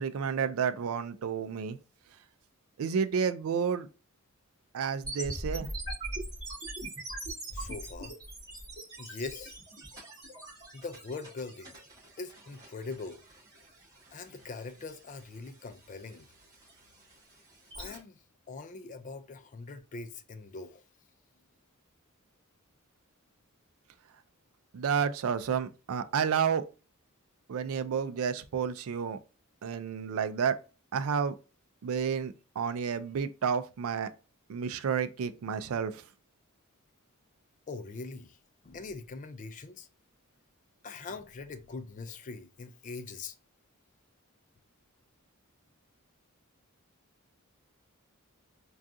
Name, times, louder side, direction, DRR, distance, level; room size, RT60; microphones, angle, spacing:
voice 1, 0.0-1.8 2.8-3.9 4.7-5.7 24.7-26.6 27.5-29.2 29.6-30.6 30.9-31.4 31.8-34.1 34.5-36.0, right 7 dB, 70° right, 0.4 m, -30 dB
sound 1, 5.0-18.0, right 1 dB, 20° right, 1.5 m, -42 dB
voice 2, 7.5-8.2 9.0-9.6 10.7-11.8 12.2-13.2 14.1-16.3 17.7-18.2 18.5-20.8 37.7-38.4 38.6-39.9 40.8-43.3, left 4 dB, 35° left, 0.4 m, -42 dB
3.6 x 2.3 x 2.6 m
head